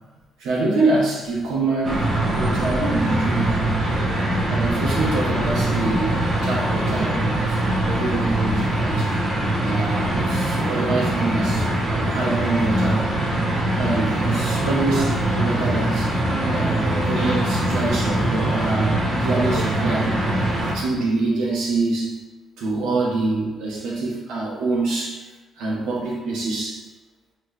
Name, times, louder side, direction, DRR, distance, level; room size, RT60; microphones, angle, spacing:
voice 1, 0.4-3.8 4.5-9.1 9.6-13.1 13.8-16.1 16.4-22.2 22.6-25.2 25.6-26.8, right 3 dB, 90° right, -4 dB, 1.1 m, -25 dB
sound 1, 1.8-20.7, right 1 dB, 55° right, 1.3 m, -22 dB
4.6 x 3.3 x 3.2 m, 1.2 s
cardioid pair, 90°, 0 cm